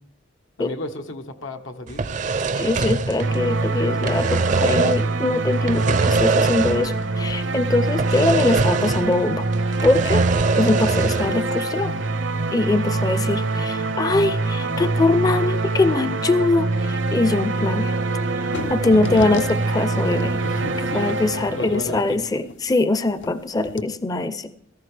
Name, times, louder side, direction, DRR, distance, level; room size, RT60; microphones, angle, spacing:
voice 1, 0.6-2.0 18.6-19.3 20.4-21.2 21.4-22.2, left 2 dB, 90° left, 5 dB, 1.2 m, -33 dB
sound 1, 1.9-3.6 3.9-5.1 5.6-7.0 7.3-7.4 8.0-9.2 9.5-11.4, right 4 dB, 40° right, 0.4 m, -23 dB
voice 2, 2.5-9.5 9.8-10.2 10.6-11.9 12.5-17.9 18.7-20.4 20.9-24.5, left 2 dB, 20° left, 12 dB, 0.4 m, -22 dB
sound 2, 3.2-22.1, right 3 dB, 75° right, 0.7 m, -24 dB
sound 3, 18.5-23.4 23.7-23.8, left 3 dB, 75° left, 0.7 m, -36 dB
16.0 x 14.5 x 3.3 m, 0.70 s
head